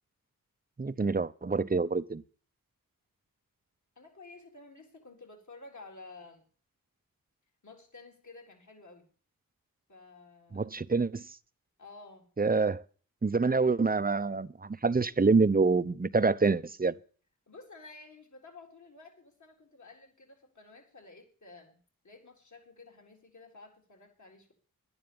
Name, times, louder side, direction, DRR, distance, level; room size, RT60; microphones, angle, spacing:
voice 1, 0.8-2.2 10.5-11.2 12.4-12.8 13.2-16.9, right 4 dB, 25° right, 0.8 m, -26 dB
voice 2, 4.0-6.4 7.6-9.1 9.9-10.6 11.8-12.2 17.5-21.8 22.0-24.5, left 3 dB, 55° left, 4.0 m, -52 dB
11.0 x 9.7 x 7.0 m
cardioid pair, 45°, 35 cm